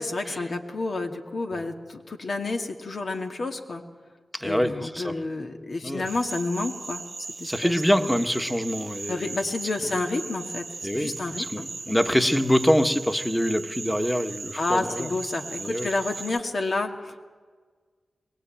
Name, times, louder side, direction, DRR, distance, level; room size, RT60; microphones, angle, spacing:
voice 1, 0.0-3.8 4.4-7.0 7.4-8.1 9.1-10.6 10.9-11.7 14.6-17.2, left 3 dB, 65° left, 2.2 m, -30 dB
voice 2, 4.3-5.2 5.8-6.1 7.4-9.4 10.8-15.1 15.6-15.9, equal, 5° left, 1.6 m, -25 dB
sound 1, 6.1-16.4, right 3 dB, 55° right, 0.6 m, -38 dB
23.0 x 19.0 x 9.0 m
cardioid pair, 40°, 0 cm